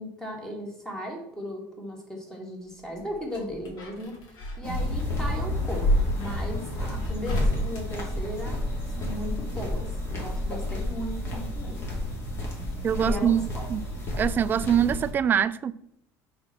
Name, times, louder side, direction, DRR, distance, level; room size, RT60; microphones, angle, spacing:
voice 1, 0.0-4.2 4.6-8.6 8.9-11.9 13.0-13.7, left 1 dB, 5° left, 2.2 m, -36 dB
sound 1, 2.8-8.8 10.2-11.1 11.3-11.4, equal, 60° left, 2.7 m, -31 dB
sound 2, 4.6-15.1, left 1 dB, 35° left, 2.5 m, -31 dB
voice 2, 12.8-13.4 13.7-13.8 14.2-15.7, right 8 dB, 25° right, 0.4 m, -23 dB
7.6 x 4.4 x 6.1 m
cardioid pair, 145°, 7 cm